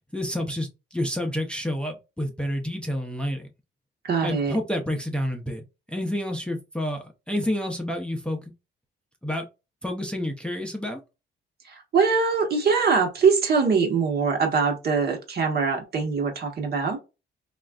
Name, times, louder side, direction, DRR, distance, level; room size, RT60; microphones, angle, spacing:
voice 1, 0.1-3.5 4.2-8.4 9.2-9.4 9.8-11.0, left 1 dB, 5° left, 0.6 m, -29 dB
voice 2, 4.0-4.6 11.7-17.0, right 5 dB, 55° right, 1.1 m, -23 dB
3.1 x 2.4 x 2.3 m
cardioid pair, 90°, 20 cm